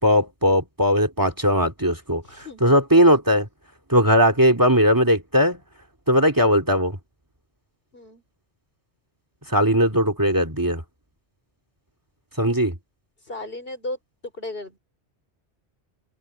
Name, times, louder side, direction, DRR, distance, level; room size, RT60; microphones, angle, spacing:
voice 1, 0.0-3.5 3.9-5.6 6.1-7.0 9.5-10.8 12.4-12.8, equal, 15° right, 2.3 m, -19 dB
voice 2, 2.2-2.6 7.9-8.2 13.2-14.8, left 2 dB, 55° left, 4.5 m, -35 dB
open air
omnidirectional pair, 1.2 m